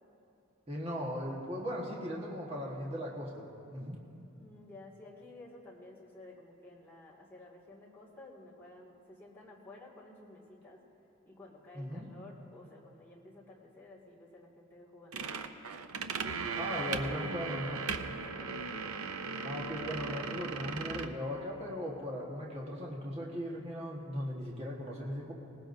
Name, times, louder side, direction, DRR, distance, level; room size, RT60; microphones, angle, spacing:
voice 1, 0.7-4.0 11.7-12.1 16.5-17.8 19.4-25.3, equal, 25° right, -3 dB, 1.4 m, -38 dB
voice 2, 4.3-10.8 11.3-15.6 18.3-18.7, left 2 dB, 10° left, -6 dB, 2.0 m, -53 dB
sound 1, 15.1-21.1, right 5 dB, 75° right, 0.6 m, -37 dB
21.0 x 18.5 x 2.7 m, 2.8 s
head